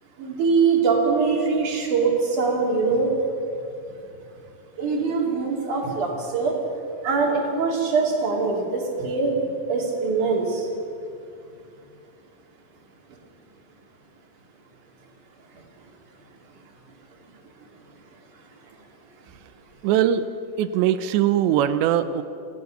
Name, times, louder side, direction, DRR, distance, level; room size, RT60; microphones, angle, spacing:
voice 1, 0.2-3.1 4.8-6.5 7.0-10.7, right 4 dB, 50° right, -1 dB, 4.4 m, -23 dB
voice 2, 19.8-20.3 20.6-22.2, right 10 dB, 90° right, 12 dB, 3.1 m, -21 dB
27.5 x 16.5 x 6.7 m, 2.6 s
omnidirectional pair, 4.9 m